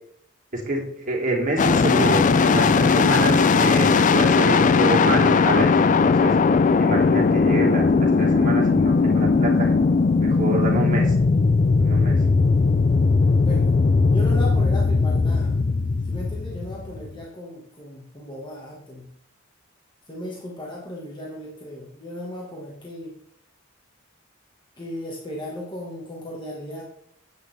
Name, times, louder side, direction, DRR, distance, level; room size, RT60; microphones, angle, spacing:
voice 1, 0.5-6.4 6.8-9.7 10.2-11.2 11.8-12.2, right 1 dB, 40° right, -2 dB, 2.9 m, -27 dB
sound 1, 1.6-17.2, left 4 dB, 40° left, 0.4 m, -19 dB
voice 2, 14.1-15.5 16.0-19.1 20.1-23.1 24.8-26.8, equal, 20° left, -2 dB, 1.6 m, -36 dB
10.0 x 9.0 x 3.4 m, 0.70 s
head